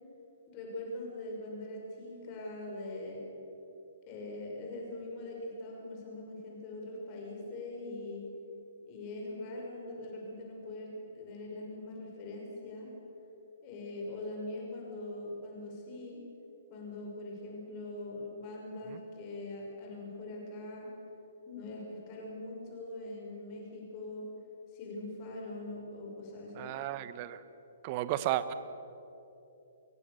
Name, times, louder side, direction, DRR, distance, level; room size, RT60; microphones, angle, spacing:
voice 1, 0.5-3.2 4.1-8.2 8.8-12.9 13.6-16.2 16.7-20.9 21.5-24.2 24.7-26.7, left 2 dB, 35° left, -1 dB, 6.0 m, -42 dB
voice 2, 26.6-27.4 27.8-28.5, right 13 dB, 35° right, 13 dB, 1.2 m, -33 dB
24.5 x 22.5 x 7.0 m, 3.0 s
figure-of-eight pair, 120°, 0 cm